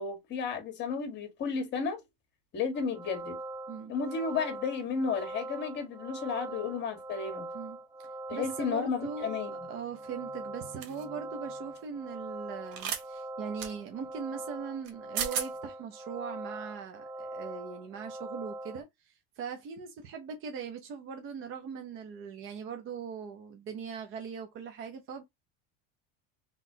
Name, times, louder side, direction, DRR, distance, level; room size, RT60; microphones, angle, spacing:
voice 1, 0.0-2.0 2.5-3.4 3.9-7.5 8.3-9.7, left 5 dB, 35° left, 1.7 m, -33 dB
sound 1, 2.7-18.8, right 2 dB, 10° right, 0.4 m, -42 dB
voice 2, 6.5-6.8 7.5-7.8 8.3-9.3 9.7-25.2, right 6 dB, 45° right, 0.9 m, -40 dB
sound 2, 10.8-11.0 12.7-13.0 13.6-13.7 14.9-15.0 15.2-15.5, right 7 dB, 75° right, 1.4 m, -33 dB
4.0 x 3.4 x 2.8 m
cardioid pair, 160°, 30 cm